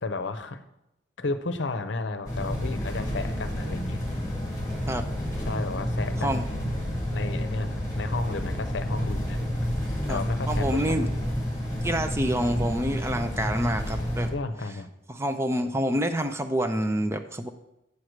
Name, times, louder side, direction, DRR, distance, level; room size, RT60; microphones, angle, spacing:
voice 1, 0.0-0.6 1.2-4.0 5.5-6.7 7.1-9.6 10.1-11.1 14.3-14.9, left 3 dB, 70° left, 9 dB, 0.7 m, -33 dB
sound 1, 2.2-14.3, equal, 20° left, 2.4 m, -30 dB
voice 2, 10.5-11.1 11.8-14.3 15.1-17.5, right 1 dB, 15° right, 7 dB, 0.5 m, -27 dB
8.4 x 4.7 x 6.4 m, 0.87 s
head